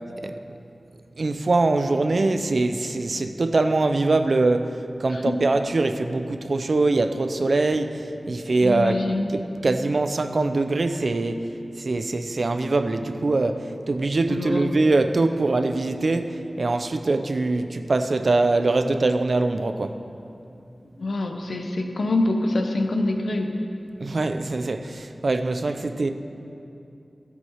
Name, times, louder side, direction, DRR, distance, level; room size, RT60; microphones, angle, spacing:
voice 1, 1.2-9.0 9.3-11.5 11.8-20.0 24.0-26.1, right 2 dB, 70° right, 8 dB, 0.6 m, -23 dB
voice 2, 8.6-9.3 14.3-14.8 21.0-23.5, left 2 dB, 80° left, 4 dB, 1.0 m, -25 dB
13.0 x 7.8 x 5.7 m, 2.7 s
cardioid pair, 45°, 0 cm